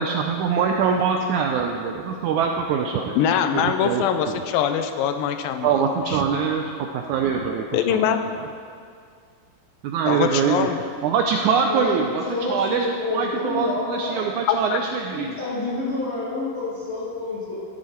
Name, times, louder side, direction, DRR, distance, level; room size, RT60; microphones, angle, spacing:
voice 1, 0.0-3.2 3.5-4.4 5.6-8.4 9.8-10.7 11.0-15.4, right 6 dB, 90° right, 3 dB, 1.7 m, -24 dB
voice 2, 3.2-5.8 6.1-6.2 7.7-8.2 10.1-10.8 14.5-14.8, left 8 dB, 85° left, 8 dB, 2.3 m, -23 dB
voice 3, 12.3-14.2 15.1-17.6, left 3 dB, 45° left, -9 dB, 0.8 m, -28 dB
14.0 x 6.4 x 4.4 m, 2.2 s
omnidirectional pair, 4.0 m